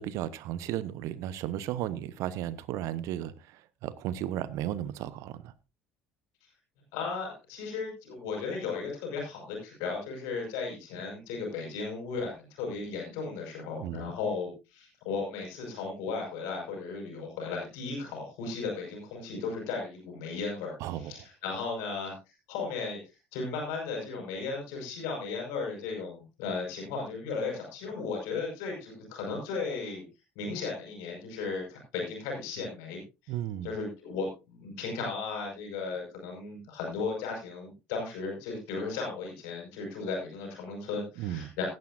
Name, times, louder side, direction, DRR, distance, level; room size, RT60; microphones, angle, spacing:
voice 1, 0.0-5.5 13.8-14.1 20.8-21.1 33.3-33.7 41.2-41.5, right 12 dB, 60° right, 1.0 m, -35 dB
voice 2, 6.9-22.1 22.5-23.0 23.3-30.1 30.4-33.0 33.6-41.7, left 4 dB, 65° left, 5.6 m, -35 dB
16.5 x 11.0 x 2.6 m
figure-of-eight pair, 60°, 6 cm